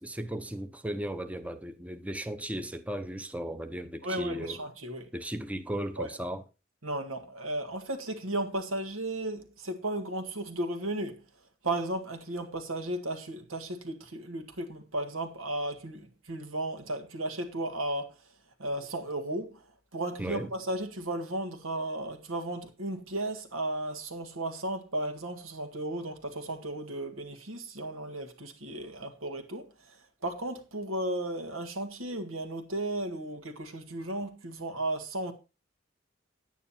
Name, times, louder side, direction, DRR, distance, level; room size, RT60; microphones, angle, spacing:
voice 1, 0.0-4.6 5.1-6.4 20.2-20.5, right 1 dB, 5° right, 0.7 m, -36 dB
voice 2, 4.0-5.1 6.0-6.1 6.8-11.2 11.6-18.3 18.6-35.3, right 1 dB, 90° right, 2.0 m, -35 dB
9.7 x 9.2 x 4.3 m
head